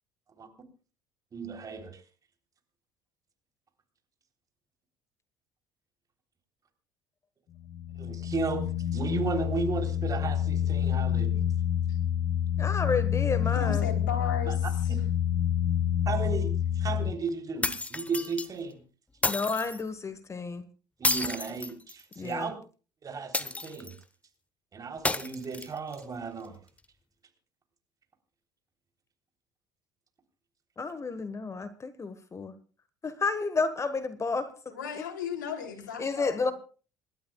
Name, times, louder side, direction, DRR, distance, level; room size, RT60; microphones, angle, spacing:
voice 1, 1.3-2.0 8.0-8.7 8.9-11.4 14.5-14.7 16.1-18.8 21.0-22.6 23.0-23.9 24.7-26.6, right 4 dB, 35° right, 3.5 m, -34 dB
sound 1, 7.6-17.1, left 10 dB, 55° left, 1.5 m, -28 dB
voice 2, 12.6-13.9 19.3-20.6 22.2-22.5 30.8-32.5 33.0-34.5 34.9-35.0 36.0-36.5, left 4 dB, 30° left, 1.3 m, -31 dB
voice 3, 13.5-14.9 34.7-36.5, left 7 dB, 85° left, 3.2 m, -36 dB
sound 2, 17.6-18.5 19.2-19.8 21.0-22.3 23.3-24.0 25.0-26.0, left 2 dB, 15° left, 1.0 m, -31 dB
27.5 x 12.5 x 2.3 m
hypercardioid pair, 60°, 10 cm